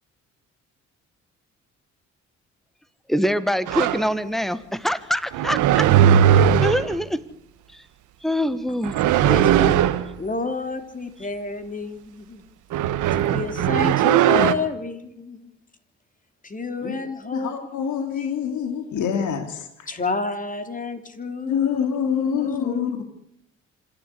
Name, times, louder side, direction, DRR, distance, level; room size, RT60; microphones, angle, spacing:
voice 1, 3.1-5.9 6.6-7.2 7.7-7.8 8.2-9.0, equal, ahead, 14 dB, 1.5 m, -24 dB
sound 1, 3.7-4.0 5.3-7.0 8.8-10.1 12.7-14.5, right 10 dB, 90° right, 1.3 m, -18 dB
voice 2, 9.2-9.8 10.2-12.4 13.1-15.5 16.4-19.0 19.9-22.9, left 4 dB, 25° left, 8 dB, 3.2 m, -30 dB
voice 3, 17.3-19.7 21.5-23.0, left 7 dB, 75° left, 7 dB, 2.7 m, -25 dB
26.5 x 11.5 x 8.4 m, 0.77 s
cardioid pair, 90°, 30 cm